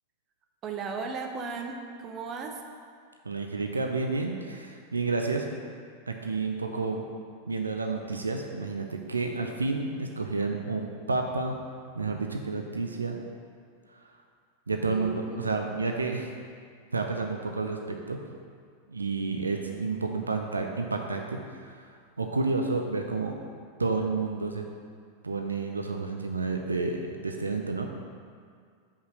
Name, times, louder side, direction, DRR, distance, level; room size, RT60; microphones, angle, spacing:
voice 1, 0.6-2.6 14.9-15.6, right 5 dB, 30° right, 3 dB, 0.7 m, -36 dB
voice 2, 3.3-5.5 6.1-7.0 7.5-11.6 11.9-13.2 14.7-16.3 16.9-18.2 18.9-21.4 21.7-21.8 22.2-23.3 23.8-24.7 25.2-27.9, right 3 dB, 75° right, 3 dB, 0.5 m, -30 dB
5.3 x 4.9 x 6.2 m, 2.1 s
figure-of-eight pair, 90°, 0 cm